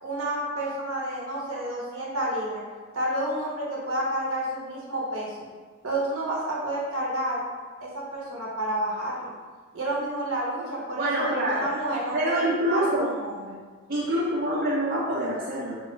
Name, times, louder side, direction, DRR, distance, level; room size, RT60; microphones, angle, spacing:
voice 1, 0.0-2.6 2.9-5.4 5.8-7.4 7.8-9.3 9.7-13.6, right 1 dB, 75° right, -4 dB, 0.8 m, -30 dB
voice 2, 11.0-11.7 12.1-13.1 13.9-15.8, right 1 dB, 45° right, -6 dB, 0.5 m, -26 dB
2.9 x 2.4 x 3.1 m, 1.5 s
head